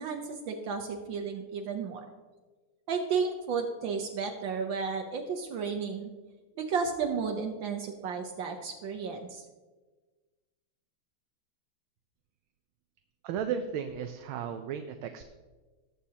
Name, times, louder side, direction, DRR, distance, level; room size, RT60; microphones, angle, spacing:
voice 1, 0.0-2.0 2.9-6.1 6.6-9.4, right 5 dB, 70° right, 3 dB, 1.5 m, -33 dB
voice 2, 13.2-15.2, right 7 dB, 90° right, 6 dB, 1.5 m, -34 dB
19.0 x 7.0 x 2.8 m, 1.3 s
omnidirectional pair, 2.2 m